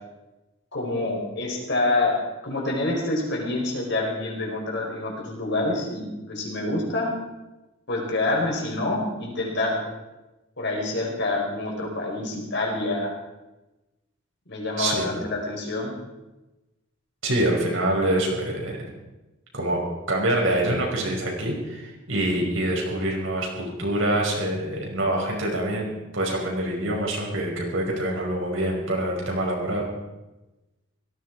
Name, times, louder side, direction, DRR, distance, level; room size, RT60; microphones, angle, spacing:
voice 1, 0.7-2.2 2.4-7.1 7.9-9.8 10.6-13.1 14.5-15.9, left 2 dB, 55° left, -1 dB, 4.9 m, -27 dB
voice 2, 17.2-18.8 19.5-19.8 20.1-29.8, right 1 dB, 70° right, -1 dB, 5.4 m, -25 dB
17.5 x 15.0 x 4.8 m, 1.0 s
head